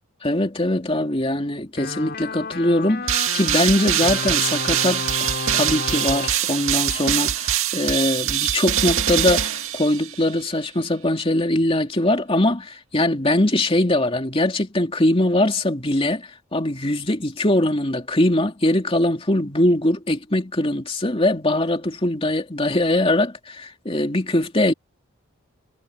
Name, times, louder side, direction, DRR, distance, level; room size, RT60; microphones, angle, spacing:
voice 1, 0.2-24.7, left 1 dB, 25° left, 2.8 m, -22 dB
sound 1, 1.8-7.9, left 3 dB, 50° left, 6.8 m, -32 dB
sound 2, 3.1-10.3, right 10 dB, 75° right, 2.1 m, -23 dB
head